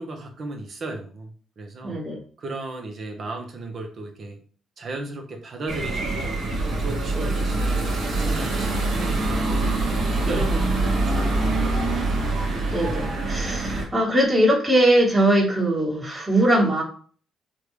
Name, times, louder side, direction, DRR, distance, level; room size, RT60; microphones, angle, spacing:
voice 1, 0.0-2.0 2.4-4.4 4.8-6.4 6.8-9.6 9.9-12.6, right 2 dB, 50° right, 4 dB, 0.8 m, -36 dB
voice 2, 1.8-2.2 7.1-7.3 10.2-10.4 12.7-16.8, right 1 dB, 15° right, -4 dB, 1.3 m, -21 dB
sound 1, 5.7-13.8, right 2 dB, 70° right, 1.1 m, -24 dB
3.6 x 2.3 x 3.1 m, 0.43 s
cardioid pair, 90°, 0 cm